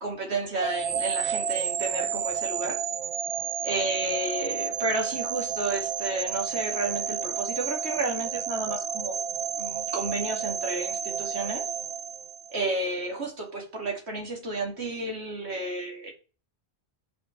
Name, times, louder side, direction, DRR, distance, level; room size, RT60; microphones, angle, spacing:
voice 1, 0.0-2.8 3.6-9.2 9.6-11.7 12.5-16.1, right 2 dB, 75° right, 1 dB, 2.5 m, -31 dB
sound 1, 0.6-12.8, right 7 dB, 60° right, 0.4 m, -31 dB
6.1 x 5.8 x 5.6 m, 0.35 s
omnidirectional pair, 1.1 m